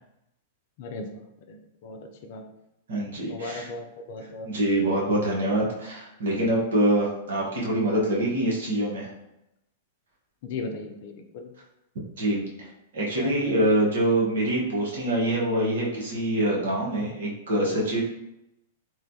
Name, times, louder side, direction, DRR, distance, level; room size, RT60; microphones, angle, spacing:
voice 1, 0.8-2.4 3.3-4.5 10.4-11.5 13.1-13.5 14.2-14.3, left 3 dB, 60° left, 5 dB, 0.4 m, -37 dB
voice 2, 2.9-3.7 4.4-9.1 12.2-12.7 12.9-18.0, right 1 dB, 75° right, -4 dB, 1.0 m, -25 dB
3.0 x 2.2 x 2.6 m, 0.88 s
hypercardioid pair, 110°, 0 cm